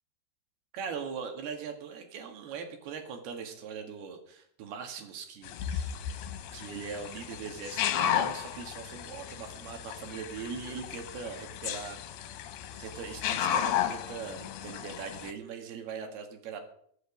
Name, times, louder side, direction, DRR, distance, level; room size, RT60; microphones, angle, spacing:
voice 1, 0.7-6.0 6.5-12.4 12.8-16.6, right 6 dB, 70° right, 5 dB, 3.8 m, -41 dB
sound 1, 5.4-15.3, left 10 dB, 75° left, 2.8 m, -34 dB
21.5 x 8.0 x 5.1 m, 0.66 s
omnidirectional pair, 4.7 m